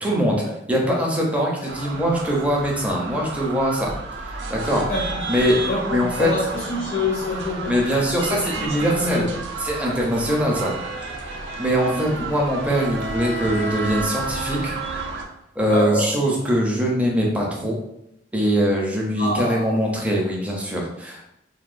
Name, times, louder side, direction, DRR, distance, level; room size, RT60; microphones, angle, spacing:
voice 1, 0.0-0.4 0.7-3.9 4.5-4.8 5.3-5.6 5.9-6.3 7.7-9.2 9.6-10.7 11.6-14.7 15.6-17.8 18.3-21.3, equal, 10° right, 0.4 m, -22 dB
voice 2, 1.6-1.9 4.9-9.3 11.6-12.3 15.7-16.1 19.2-19.8, left 2 dB, 55° left, 0.4 m, -28 dB
sound 1, 1.7-15.2, right 3 dB, 75° right, 0.4 m, -31 dB
2.8 x 2.1 x 2.4 m
head